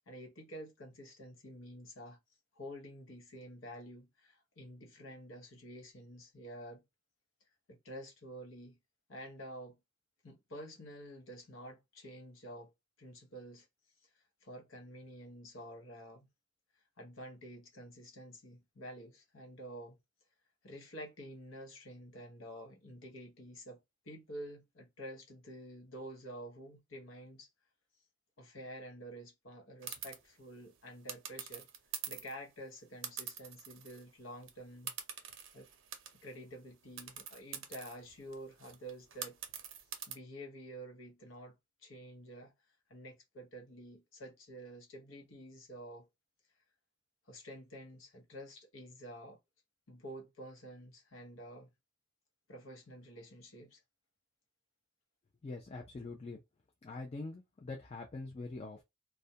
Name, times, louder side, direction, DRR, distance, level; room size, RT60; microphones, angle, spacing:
voice 1, 0.1-2.2 2.5-6.8 7.7-8.8 9.1-9.8 10.2-12.7 13.0-13.7 14.0-14.1 14.4-16.3 17.0-20.0 20.6-23.8 24.0-27.5 28.4-31.7 32.1-34.9 35.5-35.7 36.2-39.4 40.1-41.5 41.8-42.5 42.9-46.1 47.3-49.4 49.9-51.7 52.5-53.8, equal, 80° left, 0.8 m, -49 dB
sound 1, 29.8-30.2 31.1-32.4 33.0-34.1 34.4-34.5 34.9-36.4 37.0-40.1, right 8 dB, 75° right, 0.5 m, -44 dB
voice 2, 55.4-56.4 56.8-58.8, left 3 dB, 30° left, 0.4 m, -44 dB
2.3 x 2.1 x 2.7 m
head